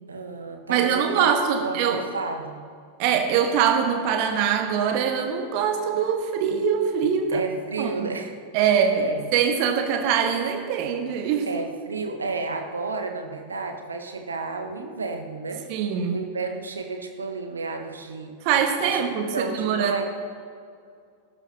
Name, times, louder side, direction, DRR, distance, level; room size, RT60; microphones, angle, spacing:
voice 1, 0.1-1.3 1.6-2.6 7.3-8.3 9.0-9.2 11.5-15.6 16.1-18.3 18.8-20.0, right 3 dB, 75° right, 4 dB, 1.3 m, -32 dB
voice 2, 0.7-2.0 3.0-7.5 7.8-8.1 8.5-11.5 15.7-16.2 18.4-20.0, right 7 dB, 45° right, 5 dB, 1.6 m, -23 dB
20.0 x 12.0 x 2.9 m, 2.3 s
figure-of-eight pair, 90°, 0 cm